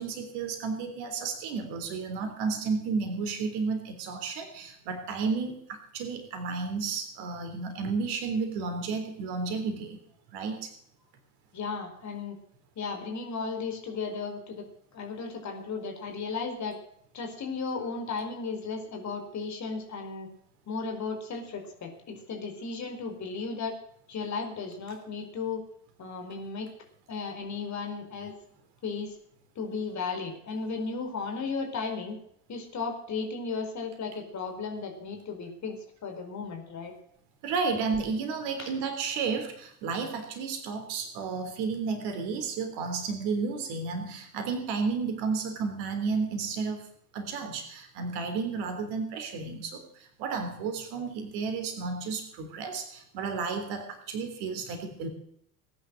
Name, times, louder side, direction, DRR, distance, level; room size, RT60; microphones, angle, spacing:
voice 1, 0.0-10.0 10.3-10.7 37.4-46.9 47.1-49.8 50.2-55.1, right 4 dB, 55° right, 7 dB, 3.7 m, -32 dB
voice 2, 11.5-12.4 12.8-14.6 14.9-16.8 17.1-20.3 20.7-23.8 24.1-25.6 26.0-26.7 27.1-28.3 28.8-29.1 29.6-32.2 32.5-36.9 38.6-38.7, left 4 dB, 35° left, 4 dB, 4.6 m, -35 dB
19.0 x 10.5 x 6.5 m, 0.68 s
figure-of-eight pair, 65°, 47 cm